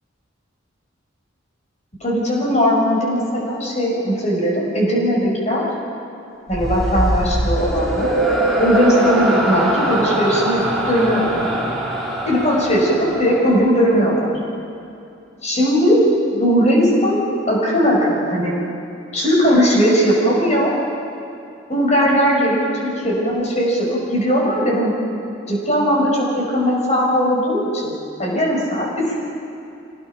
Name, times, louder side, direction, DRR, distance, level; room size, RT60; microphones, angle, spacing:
voice 1, 2.0-5.6 6.5-8.1 8.6-11.6 12.2-14.3 15.4-16.0 16.3-18.5 19.1-20.7 21.7-24.9 25.5-27.9 28.2-29.2, equal, 35° left, -3 dB, 5.4 m, -18 dB
sound 1, 6.5-13.9, right 1 dB, ahead, 3.4 m, -22 dB
25.5 x 18.5 x 5.8 m, 2.6 s
head